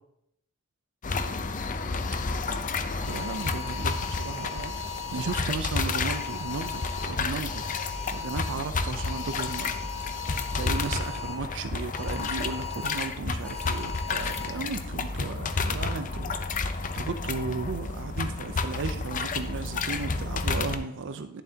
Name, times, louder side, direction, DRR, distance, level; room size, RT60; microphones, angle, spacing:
sound 1, 1.0-20.8, left 4 dB, 35° left, 0.5 m, -31 dB
sound 2, 3.0-5.4 6.0-7.1 7.5-8.5 9.0-11.3 12.0-13.0 13.4-14.5, left 6 dB, 5° left, 2.2 m, -38 dB
voice 1, 3.0-9.8 10.1-21.4, right 4 dB, 60° right, 10 dB, 0.5 m, -35 dB
11.0 x 7.1 x 2.8 m, 0.81 s
head